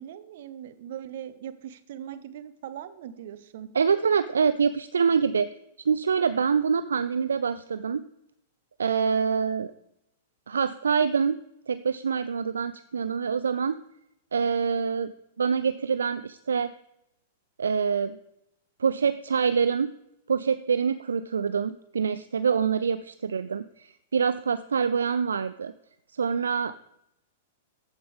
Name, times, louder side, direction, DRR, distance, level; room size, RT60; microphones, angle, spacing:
voice 1, 0.0-3.7, right 10 dB, 60° right, 12 dB, 0.8 m, -40 dB
voice 2, 3.7-5.5 5.9-8.0 8.8-9.7 10.5-11.4 11.7-13.8 14.3-15.1 15.4-16.7 17.6-18.2 18.8-19.9 20.3-25.7 26.1-26.8, right 6 dB, 80° right, 13 dB, 0.3 m, -25 dB
14.0 x 5.2 x 3.5 m, 0.80 s
figure-of-eight pair, 105°, 0 cm